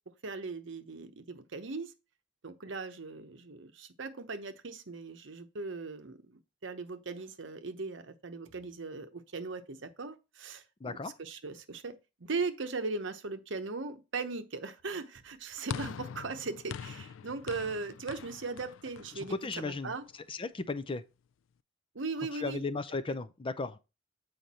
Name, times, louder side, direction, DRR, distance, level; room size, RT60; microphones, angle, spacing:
voice 1, 0.2-1.9 2.4-20.1 21.9-22.6, right 3 dB, 70° right, 0.9 m, -39 dB
voice 2, 10.8-11.1 19.2-19.9 20.3-21.0 22.3-23.8, left 3 dB, 25° left, 0.5 m, -35 dB
sound 1, 15.7-20.1, left 7 dB, 85° left, 0.4 m, -43 dB
7.9 x 5.0 x 4.2 m
head